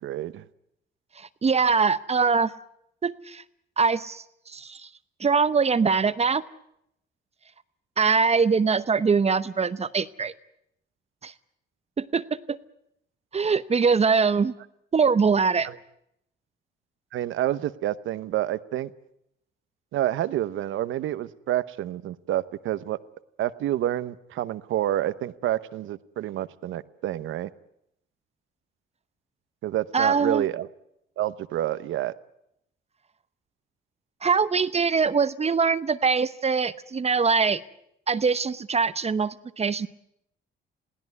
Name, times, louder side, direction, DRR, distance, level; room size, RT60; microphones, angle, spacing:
voice 1, 0.0-0.4 15.6-15.8 17.1-18.9 19.9-23.0 23.4-27.5 29.6-30.7 31.2-32.1, right 13 dB, 80° right, 15 dB, 0.9 m, -28 dB
voice 2, 1.4-2.5 3.0-3.4 3.8-4.9 5.2-6.4 8.0-10.3 11.2-11.3 12.0-12.6 13.3-14.5 14.9-15.7 29.9-30.4 34.2-37.6 38.1-39.9, right 5 dB, 30° right, 14 dB, 0.9 m, -23 dB
22.0 x 16.5 x 9.6 m, 0.77 s
cardioid pair, 90°, 20 cm